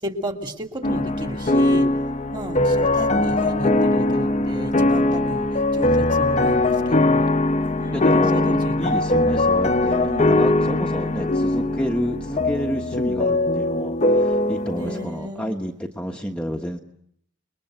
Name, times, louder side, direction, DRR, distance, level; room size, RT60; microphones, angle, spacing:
voice 1, 0.0-1.9 2.3-7.3 7.8-8.9 10.0-10.3 14.7-15.7, equal, 25° right, 4 dB, 2.9 m, -33 dB
sound 1, 0.8-15.1, left 2 dB, 35° left, 1.0 m, -21 dB
voice 2, 7.9-16.8, equal, 5° left, 1 dB, 1.2 m, -29 dB
29.5 x 22.0 x 7.9 m, 0.70 s
head